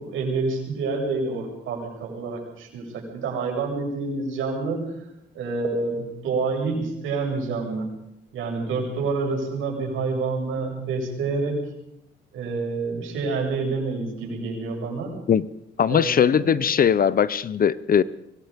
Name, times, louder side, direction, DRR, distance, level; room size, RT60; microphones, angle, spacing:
voice 1, 0.0-4.9 5.3-7.9 8.3-11.6 12.3-15.1 15.9-16.7, right 4 dB, 85° right, 0 dB, 7.5 m, -28 dB
voice 2, 15.8-18.0, left 8 dB, 45° left, 18 dB, 0.9 m, -20 dB
24.0 x 21.0 x 5.3 m, 0.79 s
cardioid pair, 90°, 20 cm